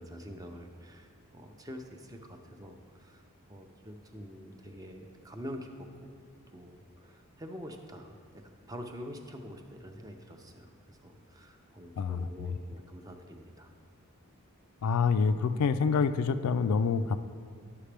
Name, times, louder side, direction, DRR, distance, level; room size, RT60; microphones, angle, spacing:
voice 1, 0.0-3.2 3.5-6.1 6.5-13.7, equal, 15° right, 4 dB, 0.5 m, -46 dB
voice 2, 12.0-12.6 14.8-17.2, left 5 dB, 80° left, 11 dB, 0.3 m, -27 dB
11.0 x 5.8 x 3.4 m, 2.2 s
head